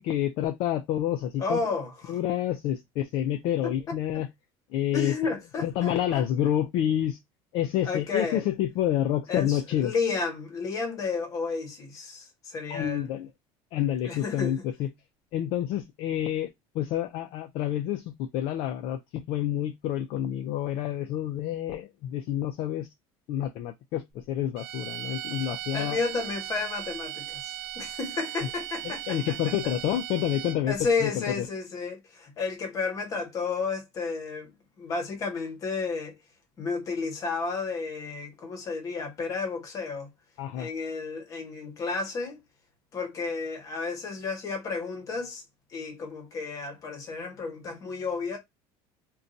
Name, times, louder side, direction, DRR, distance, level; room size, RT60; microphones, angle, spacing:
voice 1, 0.0-1.7 2.1-4.3 4.7-5.1 5.6-7.2 7.5-9.9 12.7-13.3 13.7-14.9 15.3-22.9 23.3-26.0 28.8-30.7 31.0-31.5 40.4-40.7, left 11 dB, 45° left, 0.4 m, -28 dB
voice 2, 1.4-2.2 3.6-3.7 4.1-4.2 4.9-6.2 7.8-8.4 9.3-13.1 14.1-14.5 25.7-29.4 30.7-34.5 34.8-36.1 36.6-40.1 40.6-42.4 42.9-45.4 45.7-48.4, left 4 dB, 30° left, 0.9 m, -32 dB
sound 1, 24.6-30.8, right 13 dB, 50° right, 0.7 m, -38 dB
2.6 x 2.2 x 3.8 m
cardioid pair, 175°, 12 cm